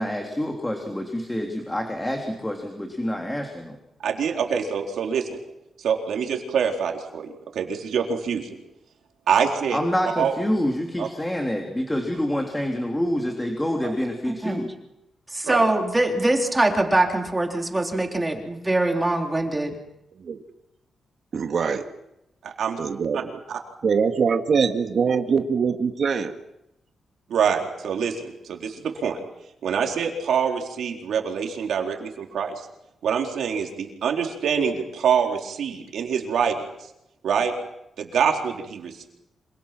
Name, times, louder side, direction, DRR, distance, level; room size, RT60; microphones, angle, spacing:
voice 1, 0.0-3.8 9.7-14.7, equal, 10° left, 2 dB, 3.5 m, -27 dB
voice 2, 4.0-5.4 5.8-8.5 9.3-9.8 10.2-10.3 11.0-11.1 13.8-13.9 15.4-15.7 22.4-22.8 23.1-23.2 23.5-23.6 27.3-29.2 29.6-32.5 33.0-36.6 37.2-37.5 38.0-39.1, right 7 dB, 85° right, 2 dB, 4.3 m, -25 dB
voice 3, 14.3-14.6 15.3-19.7, right 2 dB, 15° right, 2 dB, 3.7 m, -23 dB
voice 4, 21.3-21.8 22.8-23.4 23.8-26.3, right 6 dB, 60° right, 6 dB, 2.0 m, -23 dB
27.5 x 26.0 x 6.1 m, 0.86 s
cardioid pair, 105°, 0 cm